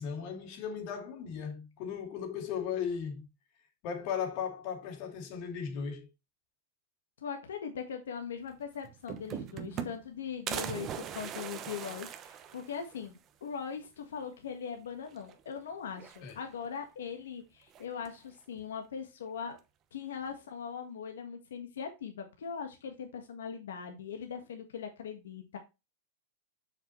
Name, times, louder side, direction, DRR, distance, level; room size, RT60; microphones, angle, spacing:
voice 1, 0.0-3.3 3.8-6.1 16.2-16.4, left 7 dB, 50° left, 2.6 m, -36 dB
voice 2, 7.2-19.6 19.9-25.6, left 7 dB, 90° left, 1.5 m, -40 dB
sound 1, 8.5-8.6 8.8-10.1 10.5-13.1 13.5-13.6 13.8-13.9 15.1-15.6 15.9-16.7 17.7-18.3, right 9 dB, 30° right, 0.9 m, -40 dB
7.0 x 6.0 x 3.1 m
supercardioid pair, 135°, 0 cm